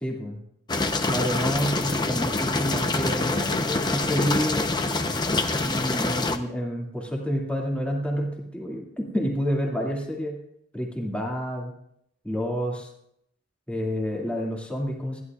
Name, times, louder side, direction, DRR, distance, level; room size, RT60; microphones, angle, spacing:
voice 1, 0.0-0.4 1.1-4.7 5.6-10.4 10.7-11.7 12.2-12.9 13.7-15.2, equal, 5° left, -2 dB, 2.3 m, -29 dB
sound 1, 0.7-6.4, left 2 dB, 20° left, 0.8 m, -26 dB
29.0 x 11.0 x 2.4 m, 0.75 s
head